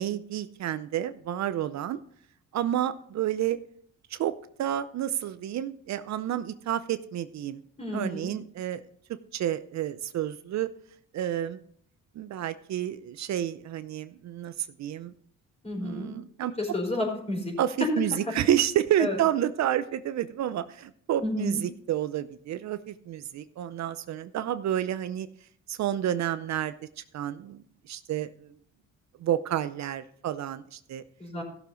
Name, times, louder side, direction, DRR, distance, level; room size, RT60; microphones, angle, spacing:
voice 1, 0.0-2.0 2.5-3.6 4.1-4.3 4.6-7.6 7.9-8.8 9.3-10.7 11.1-11.6 12.2-15.1 15.8-16.5 17.6-25.3 25.7-27.6 27.9-28.5 29.2-31.0, right 11 dB, 65° right, 12 dB, 0.6 m, -30 dB
voice 2, 7.8-8.3 15.6-16.1 16.6-17.5 17.8-17.9 19.0-19.2 21.2-21.6 31.2-31.4, left 2 dB, 20° left, 0 dB, 4.5 m, -30 dB
15.5 x 6.9 x 3.9 m, 0.62 s
cardioid pair, 90°, 30 cm